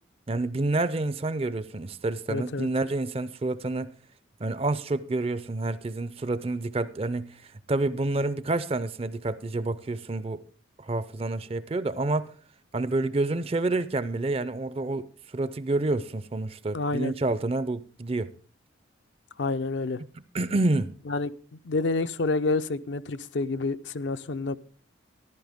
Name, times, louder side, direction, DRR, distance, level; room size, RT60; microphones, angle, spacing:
voice 1, 0.3-3.9 4.4-7.4 7.7-10.4 10.8-12.3 12.7-15.1 15.3-18.3 20.3-20.9, right 2 dB, 30° right, 0.4 m, -28 dB
voice 2, 2.3-2.7 16.7-17.1 19.4-20.0 21.1-21.3 21.6-24.5, left 3 dB, 60° left, 0.5 m, -28 dB
14.0 x 11.5 x 3.5 m
head